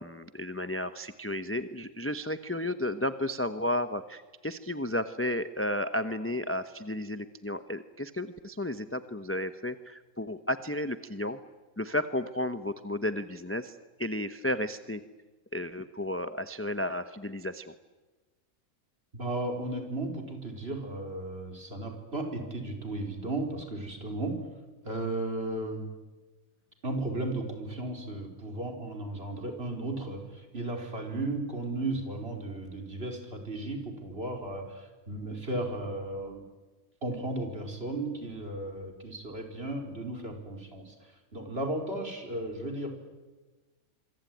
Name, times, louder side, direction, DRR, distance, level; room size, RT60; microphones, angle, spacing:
voice 1, 0.0-11.4 11.8-15.0 15.5-17.7, left 1 dB, 10° left, 10 dB, 0.9 m, -33 dB
voice 2, 19.1-24.4 24.8-25.9 26.8-36.4 37.0-42.9, right 2 dB, 40° right, 3 dB, 5.0 m, -35 dB
26.5 x 24.5 x 9.3 m, 1.2 s
omnidirectional pair, 1.5 m